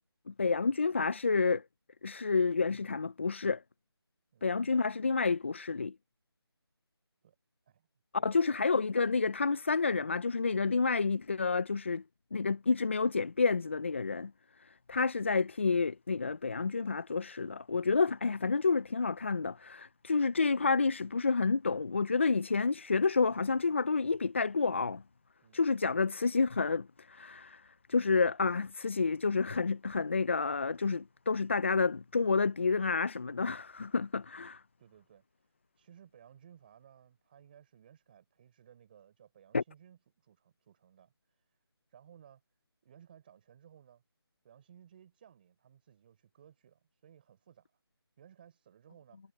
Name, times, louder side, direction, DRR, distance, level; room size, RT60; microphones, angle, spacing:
voice 1, 0.3-1.6 2.0-3.6 4.4-5.9 8.1-12.0 12.3-14.3 14.9-25.0 25.5-27.6 27.9-34.6 39.5-39.6, left 4 dB, 30° left, 0.6 m, -29 dB
voice 2, 4.3-4.7 7.2-7.3 7.7-7.9 8.1-8.7 25.4-26.0 34.8-41.6 41.9-42.4 42.8-44.0 44.4-47.8 48.2-49.2, right 9 dB, 20° right, 4.3 m, -59 dB
figure-of-eight pair, 170°, 14 cm